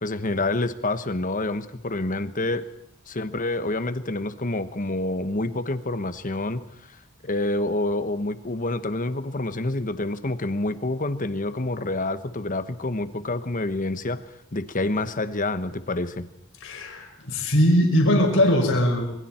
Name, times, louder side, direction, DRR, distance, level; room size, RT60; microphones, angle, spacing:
voice 1, 0.0-2.6 3.1-6.6 7.2-14.2 14.5-16.3, left 2 dB, 40° left, 11 dB, 1.3 m, -27 dB
voice 2, 16.6-19.1, equal, 65° left, 1 dB, 5.4 m, -20 dB
26.5 x 22.5 x 4.5 m, 0.79 s
head